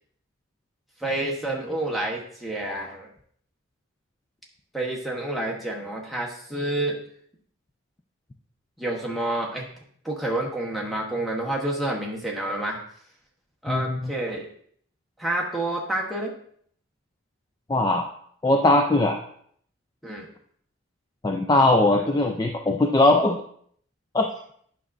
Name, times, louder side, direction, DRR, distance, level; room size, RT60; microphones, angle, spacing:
voice 1, 1.0-3.1 4.7-7.0 8.8-9.7 10.0-12.8 13.6-14.5 15.2-16.3 20.0-20.3, right 1 dB, ahead, -3 dB, 1.0 m, -29 dB
voice 2, 13.7-14.1 17.7-18.1 18.4-19.2 21.2-23.4 24.1-24.3, left 2 dB, 20° left, 3 dB, 0.3 m, -20 dB
9.0 x 5.9 x 2.5 m, 0.62 s
head